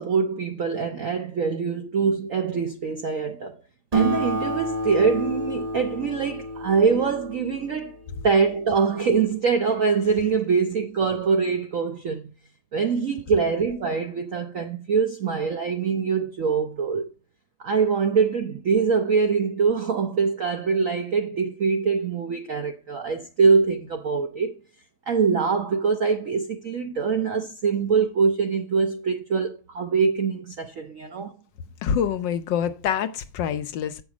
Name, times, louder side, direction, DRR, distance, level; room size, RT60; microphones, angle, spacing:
voice 1, 0.0-3.5 3.9-8.0 8.2-12.3 12.7-17.1 17.6-24.5 25.1-31.3, right 5 dB, 70° right, 0.7 m, -23 dB
Acoustic guitar, 3.9-8.8, right 1 dB, 30° right, 0.8 m, -29 dB
voice 2, 31.8-34.0, left 8 dB, 70° left, 1.2 m, -26 dB
8.3 x 6.1 x 4.9 m
omnidirectional pair, 2.3 m